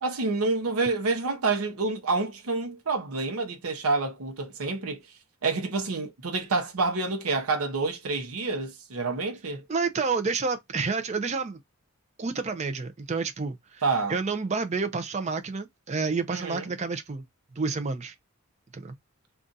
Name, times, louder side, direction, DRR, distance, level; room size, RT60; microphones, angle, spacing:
voice 1, 0.0-5.0 5.4-9.6 13.8-14.2 16.3-16.7, right 3 dB, 85° right, 0.8 m, -28 dB
voice 2, 9.7-11.6 12.2-13.8 14.1-17.2 17.5-18.1 18.7-18.9, right 4 dB, 30° right, 0.4 m, -29 dB
2.5 x 2.4 x 3.8 m
head